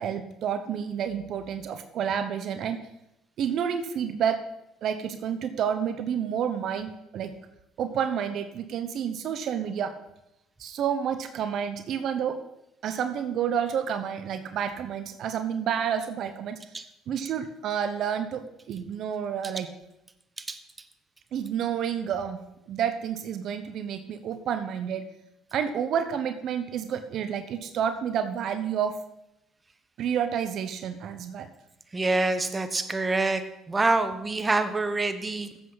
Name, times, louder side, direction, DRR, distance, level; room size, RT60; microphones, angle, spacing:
voice 1, 0.0-2.8 3.4-4.4 4.8-7.3 7.8-9.9 10.6-12.4 12.8-16.6 17.1-19.7 21.3-22.4 22.7-25.1 25.5-28.9 30.0-31.5, right 8 dB, 65° right, 9 dB, 0.8 m, -29 dB
voice 2, 31.9-35.6, right 3 dB, 25° right, 10 dB, 1.0 m, -26 dB
14.5 x 7.8 x 4.0 m, 0.88 s
supercardioid pair, 70°, 0 cm